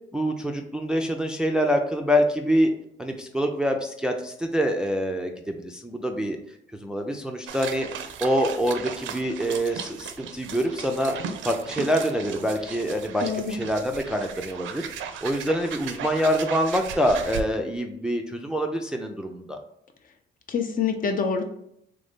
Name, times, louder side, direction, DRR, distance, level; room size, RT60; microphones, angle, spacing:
voice 1, 0.1-2.7 3.0-6.4 6.8-7.9 8.2-11.1 11.4-14.9 15.2-19.6, equal, 5° right, 4 dB, 0.3 m, -25 dB
sound 1, 7.5-17.4, right 7 dB, 75° right, 0.4 m, -36 dB
voice 2, 13.2-13.5 20.5-21.4, left 6 dB, 45° left, 6 dB, 0.6 m, -26 dB
3.3 x 2.6 x 3.5 m, 0.75 s
cardioid pair, 90°, 20 cm